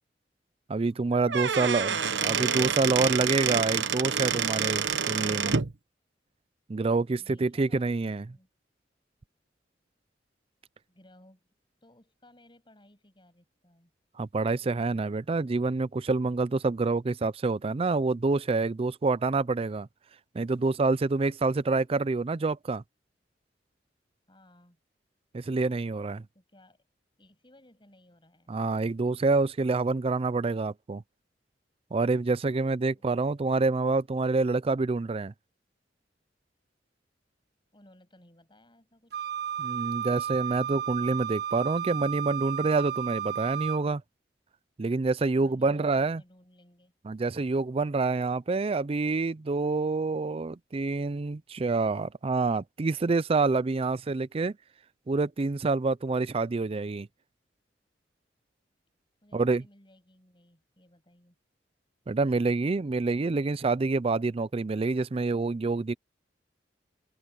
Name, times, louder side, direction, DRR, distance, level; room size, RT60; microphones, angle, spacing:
voice 1, 0.7-5.6 6.7-8.3 14.2-19.9 20.3-22.8 25.3-26.2 28.5-31.0 31.9-35.3 39.6-44.0 44.8-46.2 47.1-54.6 55.1-57.1 59.3-59.6 62.1-65.9, right 3 dB, 35° right, 0.4 m, -27 dB
Squeak / Wood, 1.1-5.7, right 7 dB, 85° right, 1.1 m, -27 dB
voice 2, 7.2-8.5 10.9-11.4 11.8-13.9 24.3-24.8 26.3-26.8 27.2-28.5 32.9-33.0 37.7-39.3 45.4-46.9 59.2-61.4, left 1 dB, 30° left, 6.9 m, -59 dB
Wind instrument woodwind instrument, 39.1-43.8, right 10 dB, 60° right, 1.0 m, -33 dB
open air
head